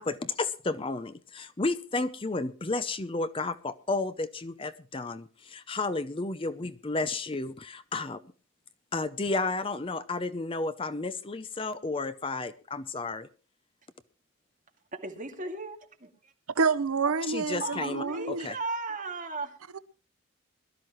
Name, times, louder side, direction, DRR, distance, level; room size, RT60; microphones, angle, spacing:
voice 1, 0.0-8.2 8.9-13.3 17.3-18.6, left 3 dB, 25° left, 0.6 m, -32 dB
voice 2, 14.9-16.3 17.0-17.1 17.6-19.6, right 3 dB, 35° right, 2.2 m, -36 dB
voice 3, 16.5-18.5 19.7-19.8, right 4 dB, 85° right, 0.7 m, -28 dB
21.5 x 12.5 x 3.1 m
head